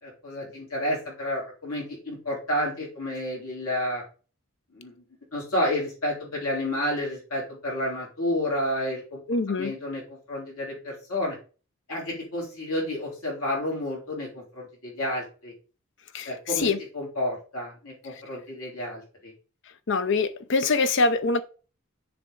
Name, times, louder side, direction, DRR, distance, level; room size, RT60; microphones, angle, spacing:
voice 1, 0.0-4.0 4.7-5.0 5.3-9.2 9.6-11.4 11.9-15.5 16.3-19.3, left 1 dB, 80° left, 3.7 m, -30 dB
voice 2, 9.3-9.7 16.1-16.3 16.6-16.8 19.9-21.4, left 3 dB, 55° left, 0.6 m, -23 dB
7.0 x 4.7 x 3.8 m
head